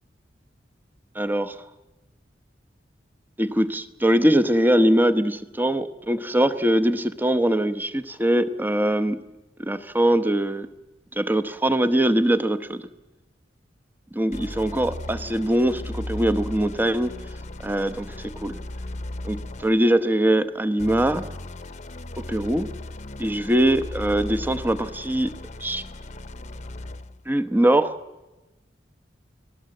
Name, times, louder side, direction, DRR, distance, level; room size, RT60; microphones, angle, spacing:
voice 1, 1.1-1.6 3.4-9.2 9.6-10.7 11.1-12.9 14.1-17.1 17.6-18.5 19.2-21.3 22.2-22.7 23.2-25.3 25.6-25.8 27.3-28.0, right 1 dB, 10° right, 10 dB, 1.0 m, -22 dB
sound 1, 14.3-19.9 20.8-27.2, left 1 dB, 40° left, 0.9 m, -36 dB
29.5 x 19.5 x 7.8 m, 1.1 s
head